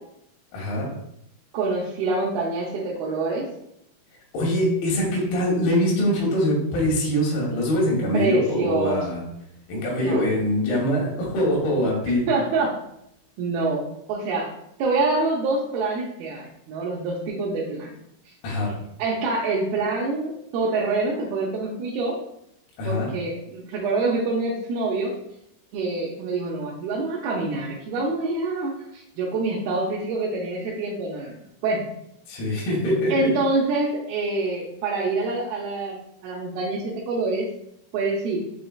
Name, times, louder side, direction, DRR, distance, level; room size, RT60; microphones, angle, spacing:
voice 1, 0.5-0.9 4.3-9.2 9.7-12.3 18.4-18.7 22.8-23.1 32.3-33.3, equal, 80° left, -3 dB, 3.0 m, -23 dB
voice 2, 1.5-3.5 8.1-9.0 10.0-10.3 12.3-12.7 13.4-13.8 14.1-14.5 14.8-17.9 19.0-22.2 22.9-25.1 25.7-31.8 33.1-37.5 37.9-38.4, right 3 dB, 80° right, -5 dB, 2.6 m, -26 dB
6.8 x 3.2 x 2.3 m, 0.77 s
omnidirectional pair, 4.4 m